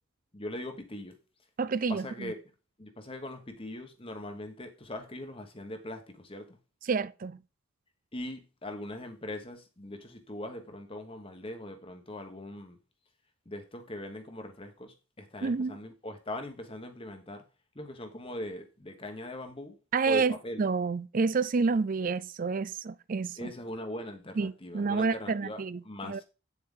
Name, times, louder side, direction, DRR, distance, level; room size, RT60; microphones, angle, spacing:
voice 1, 0.3-1.2 1.9-2.4 2.8-6.6 8.1-12.8 13.4-17.4 17.7-19.8 20.1-20.7 23.4-26.2, left 1 dB, 25° left, 1.2 m, -41 dB
voice 2, 1.6-2.3 6.9-7.4 15.4-15.8 19.9-23.5 24.4-25.8 26.1-26.2, right 4 dB, 40° right, 0.4 m, -29 dB
8.6 x 7.3 x 3.8 m
head